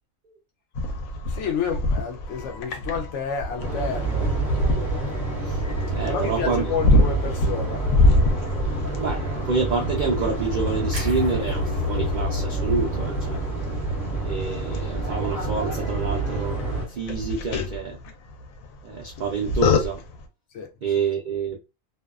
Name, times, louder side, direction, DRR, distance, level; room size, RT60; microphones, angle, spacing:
sound 1, 0.8-20.2, left 2 dB, 90° left, 1.0 m, -27 dB
voice 1, 1.3-4.3 6.1-7.8 20.5-20.7, left 6 dB, 70° left, 0.8 m, -29 dB
sound 2, 3.6-16.8, right 2 dB, 35° left, 1.1 m, -27 dB
voice 2, 5.9-6.7 9.0-13.4 14.2-16.6 16.9-18.0 18.8-20.0 20.8-21.6, right 4 dB, 85° right, 0.4 m, -27 dB
sound 3, 10.9-15.0 15.3-15.5, right 1 dB, 50° right, 1.1 m, -40 dB
2.6 x 2.2 x 2.3 m
omnidirectional pair, 1.4 m